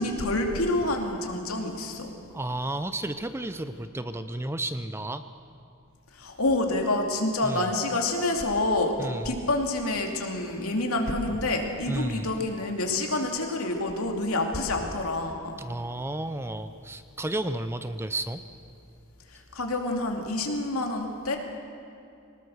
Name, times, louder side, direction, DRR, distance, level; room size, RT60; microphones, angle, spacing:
voice 1, 0.0-2.1 6.2-8.9 9.2-15.6 19.3-21.4, left 2 dB, 80° left, 2 dB, 2.7 m, -27 dB
voice 2, 2.3-5.2 7.4-7.7 9.0-9.3 11.9-12.3 15.6-18.4, right 1 dB, 10° right, 10 dB, 0.5 m, -32 dB
23.5 x 19.5 x 6.5 m, 2.6 s
head